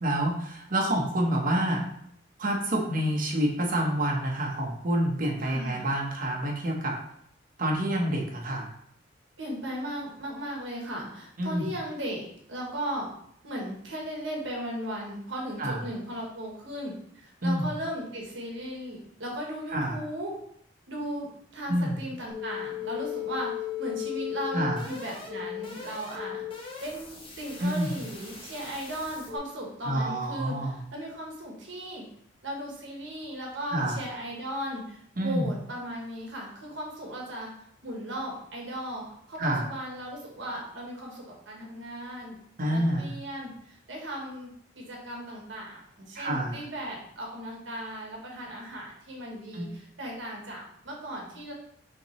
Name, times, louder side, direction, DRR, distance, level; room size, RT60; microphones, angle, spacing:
voice 1, 0.0-1.8 2.4-7.0 7.6-8.7 11.4-11.6 15.6-15.8 17.4-17.6 19.7-20.0 21.7-22.0 24.5-24.8 27.6-28.0 29.8-30.8 33.7-34.0 35.2-35.5 39.4-39.6 42.6-43.1 46.1-46.6 49.5-49.7, right 1 dB, 45° right, -1 dB, 0.9 m, -27 dB
voice 2, 5.4-5.9 9.4-12.2 12.5-13.1 13.4-20.4 20.9-26.4 26.8-32.1 32.4-44.5 44.7-51.5, equal, 75° right, -1 dB, 1.2 m, -37 dB
sound 1, 22.3-29.4, left 11 dB, 30° left, 1.0 m, -37 dB
5.7 x 2.8 x 3.1 m, 0.69 s
head